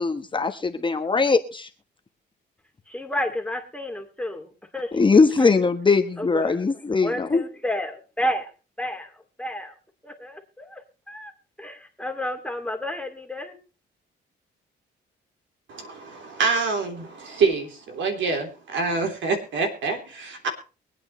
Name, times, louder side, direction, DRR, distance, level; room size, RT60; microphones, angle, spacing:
voice 1, 0.0-1.7 4.9-7.4, left 4 dB, 25° left, 6 dB, 1.1 m, -21 dB
voice 2, 2.9-5.7 6.2-6.7 7.0-8.5 8.8-9.1 9.4-9.7 10.0-11.3 11.6-13.6, left 1 dB, 5° left, 4 dB, 2.4 m, -31 dB
voice 3, 15.7-20.5, right 4 dB, 70° right, 4 dB, 3.3 m, -26 dB
23.5 x 8.8 x 3.1 m, 0.34 s
cardioid pair, 90°, 20 cm